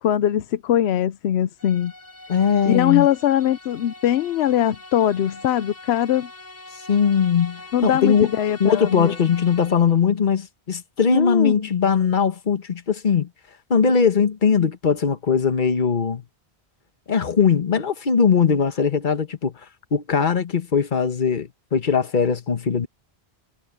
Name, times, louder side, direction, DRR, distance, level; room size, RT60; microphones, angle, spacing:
voice 1, 0.0-1.9 2.7-6.3 7.7-9.4 11.1-11.5, left 11 dB, 85° left, 0.9 m, -21 dB
sound 1, 1.6-10.1, left 2 dB, 40° right, 5.5 m, -42 dB
voice 2, 2.3-3.1 6.9-8.3 8.6-13.3 13.7-16.2 17.1-19.5 19.9-22.9, left 6 dB, 50° left, 1.3 m, -20 dB
omnidirectional pair, 1.1 m